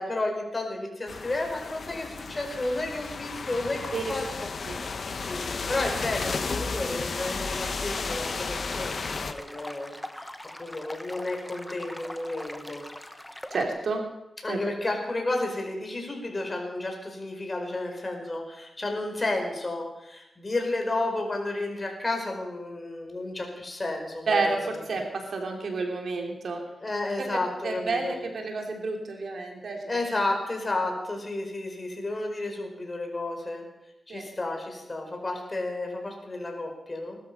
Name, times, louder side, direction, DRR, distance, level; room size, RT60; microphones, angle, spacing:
voice 1, 0.0-4.2 5.3-10.3 10.6-12.8 14.4-24.4 26.8-28.1 29.9-33.6 34.1-37.2, left 2 dB, 30° left, 2 dB, 4.6 m, -32 dB
sound 1, 1.1-9.3, left 4 dB, 60° left, 1.2 m, -33 dB
sound 2, 7.9-13.6, left 1 dB, 10° left, 1.3 m, -42 dB
voice 2, 13.5-14.0 14.5-14.6 24.3-26.6 27.6-29.8 34.1-34.3, right 3 dB, 70° right, 2 dB, 3.1 m, -30 dB
20.0 x 12.5 x 5.5 m, 0.90 s
cardioid pair, 60°, 0 cm